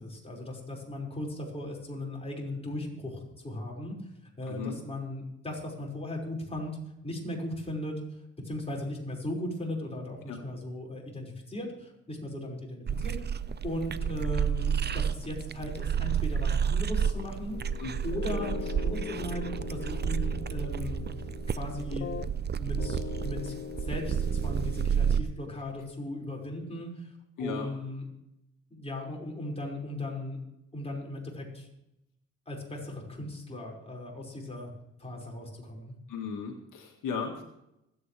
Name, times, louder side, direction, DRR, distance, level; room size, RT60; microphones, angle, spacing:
voice 1, 0.0-4.0 4.4-6.7 7.0-8.0 8.4-13.2 13.6-17.6 18.0-21.0 21.6-22.1 22.6-27.1 27.4-28.0 28.7-30.4 30.7-31.7 32.5-34.7 35.0-35.9, left 1 dB, 20° left, -2 dB, 5.5 m, -37 dB
sound 1, 12.9-25.2, right 7 dB, 35° right, 0.6 m, -30 dB
sound 2, 17.5-22.5 22.8-24.9, left 9 dB, 35° left, 0.6 m, -41 dB
voice 2, 27.4-27.7 36.1-37.4, left 5 dB, 80° left, 2 dB, 1.8 m, -35 dB
26.0 x 8.8 x 3.4 m, 0.85 s
cardioid pair, 70°, 31 cm